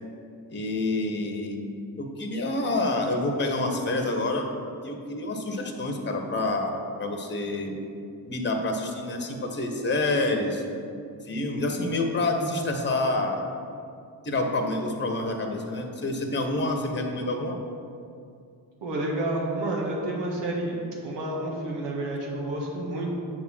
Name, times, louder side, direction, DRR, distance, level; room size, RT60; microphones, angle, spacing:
voice 1, 0.5-1.6 2.0-4.5 4.8-6.7 7.0-7.8 8.2-10.6 11.3-13.4 14.2-17.5, left 2 dB, 25° left, 3 dB, 1.1 m, -27 dB
voice 2, 18.8-20.8 21.0-23.1, right 1 dB, 85° right, -2 dB, 1.5 m, -29 dB
7.0 x 3.7 x 6.1 m, 2.4 s
supercardioid pair, 55°, 42 cm